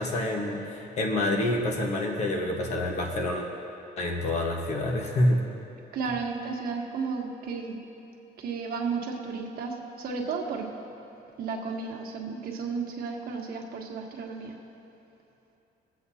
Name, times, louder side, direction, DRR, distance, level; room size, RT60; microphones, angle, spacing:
voice 1, 0.0-3.5 4.0-5.4, left 1 dB, 45° left, 1 dB, 1.3 m, -27 dB
voice 2, 5.9-7.8 8.4-10.7 11.4-14.6, right 5 dB, 65° right, 1 dB, 1.3 m, -33 dB
22.0 x 8.0 x 2.8 m, 2.8 s
cardioid pair, 175°, 16 cm